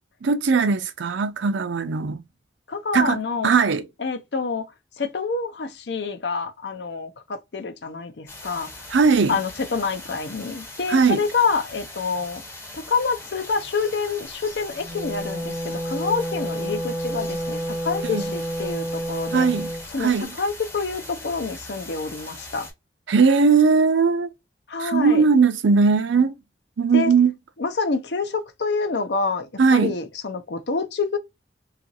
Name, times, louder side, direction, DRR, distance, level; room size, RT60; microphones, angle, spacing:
voice 1, 0.2-2.2 2.9-3.9 8.9-9.4 10.9-11.2 18.0-18.3 19.3-19.7 20.0-20.3 23.1-24.3 24.8-26.3 26.8-27.3 29.6-29.9, right 5 dB, 75° right, 0.5 m, -19 dB
voice 2, 2.7-3.5 4.0-4.7 5.0-8.9 9.3-12.4 12.7-19.5 19.9-20.1 20.4-22.7 24.7-25.2 26.9-27.1 27.6-31.2, left 4 dB, 65° left, 0.6 m, -27 dB
sound 1, 8.3-22.7, left 2 dB, 15° left, 0.7 m, -40 dB
Wind instrument woodwind instrument, 14.7-19.9, right 1 dB, 15° right, 0.4 m, -29 dB
2.9 x 2.4 x 2.6 m
head